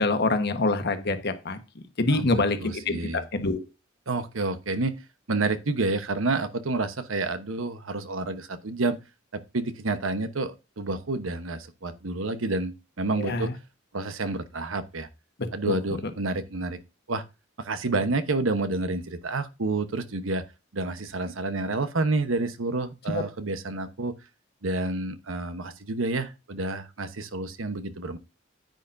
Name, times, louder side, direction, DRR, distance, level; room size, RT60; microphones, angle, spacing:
voice 1, 0.0-3.6 13.2-13.5 15.7-15.8 23.1-23.2, left 2 dB, 55° left, 1.2 m, -26 dB
voice 2, 2.1-3.2 4.1-5.0 5.3-9.0 9.3-13.5 13.9-15.1 15.5-16.8 17.1-17.2 17.6-20.4 20.7-24.1 24.6-28.2, right 3 dB, 80° right, 1.0 m, -29 dB
10.0 x 9.2 x 2.6 m
head